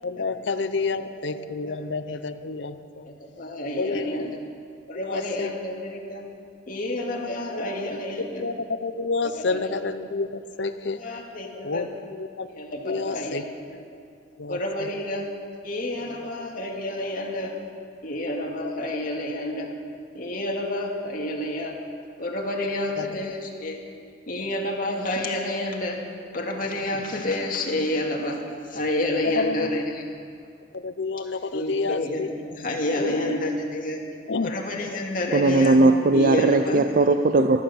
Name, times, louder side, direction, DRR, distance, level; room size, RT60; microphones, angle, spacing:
voice 1, 0.0-3.1 3.8-4.3 5.0-5.5 7.5-7.6 8.4-8.6 8.8-11.0 11.6-12.5 12.9-13.4 14.4-14.9 16.2-16.3 23.0-23.2 29.3-29.7 30.7-32.3 32.9-33.4 34.3-34.5 36.6-37.0, left 4 dB, 70° left, 10 dB, 0.7 m, -29 dB
voice 2, 1.3-1.8 2.1-2.2 3.2-4.4 4.9-6.3 6.7-8.4 9.3-9.6 11.0-11.9 12.5-13.4 13.7-13.8 14.5-15.3 15.6-17.5 18.0-19.7 20.1-21.8 22.2-23.8 24.3-26.0 26.3-28.4 28.6-30.0 31.5-34.0 34.4-35.8 36.1-36.8, left 1 dB, 50° left, 0 dB, 2.2 m, -29 dB
voice 3, 35.3-37.6, right 2 dB, 50° right, 9 dB, 0.5 m, -18 dB
14.5 x 13.0 x 7.1 m, 2.2 s
head